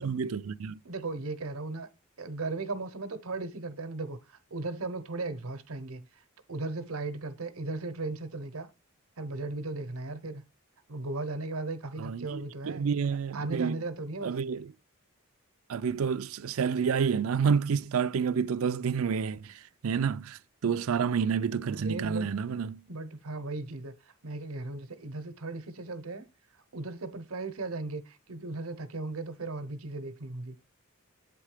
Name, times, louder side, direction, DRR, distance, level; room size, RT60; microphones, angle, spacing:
voice 1, 0.0-0.8 12.0-13.8 14.2-14.7 15.7-19.5 19.8-22.8, right 6 dB, 75° right, 0.4 m, -29 dB
voice 2, 0.8-1.9 2.2-6.1 6.5-8.7 9.2-10.4 10.9-12.9 13.3-14.4 21.7-22.3 22.9-24.0 24.2-26.3 26.7-30.6, right 3 dB, 90° right, 0.9 m, -36 dB
8.6 x 3.6 x 4.9 m
head